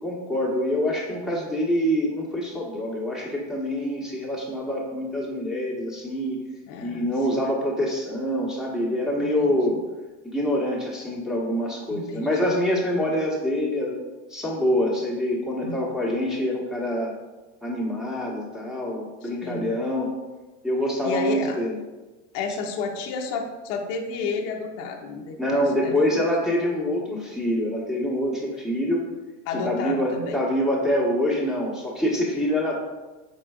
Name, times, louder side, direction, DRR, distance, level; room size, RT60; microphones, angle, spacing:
voice 1, 0.0-6.4 6.8-9.8 10.2-14.0 14.3-17.1 17.6-20.1 20.6-21.8 25.4-29.0 29.6-32.9, equal, ahead, -3 dB, 1.1 m, -25 dB
voice 2, 6.7-7.4 9.2-9.6 11.9-12.5 15.6-16.0 19.2-19.8 21.0-21.6 22.3-26.2 29.5-30.4, left 4 dB, 45° left, 3 dB, 0.6 m, -32 dB
4.4 x 4.3 x 2.3 m, 1.2 s
hypercardioid pair, 100°, 36 cm